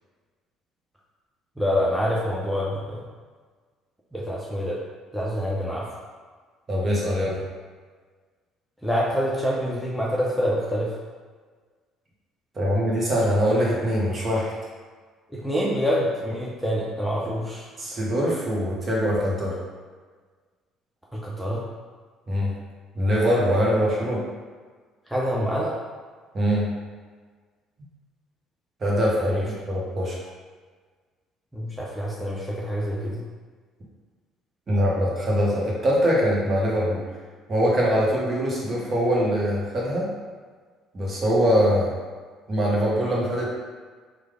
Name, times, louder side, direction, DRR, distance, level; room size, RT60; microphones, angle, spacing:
voice 1, 1.6-3.0 4.1-4.8 5.1-5.8 8.8-10.9 15.3-17.7 21.1-21.6 25.1-25.7 29.2-29.4 31.5-33.2, equal, ahead, -6 dB, 0.7 m, -26 dB
voice 2, 6.7-7.4 12.5-14.5 17.8-19.6 22.3-22.5 22.9-24.2 26.3-26.7 28.8-30.2 34.7-37.0 37.5-40.1 40.9-41.9 42.5-43.7, equal, 35° right, -4 dB, 1.1 m, -23 dB
3.2 x 2.3 x 3.5 m, 1.5 s
hypercardioid pair, 55°, 0 cm